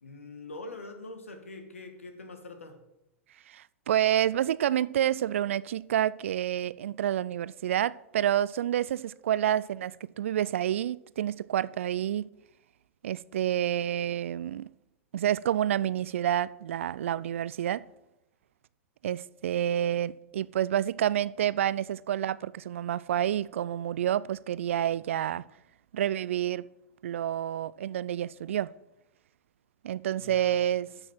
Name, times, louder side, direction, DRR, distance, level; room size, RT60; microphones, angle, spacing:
voice 1, 0.0-2.8 30.2-31.0, left 2 dB, 90° left, 1.8 m, -44 dB
voice 2, 3.5-9.9 10.2-12.3 13.0-14.7 15.1-17.8 19.0-25.4 25.9-26.6 27.0-28.7 29.8-30.9, right 11 dB, 75° right, 0.4 m, -28 dB
12.5 x 6.2 x 6.1 m
hypercardioid pair, 105°, 7 cm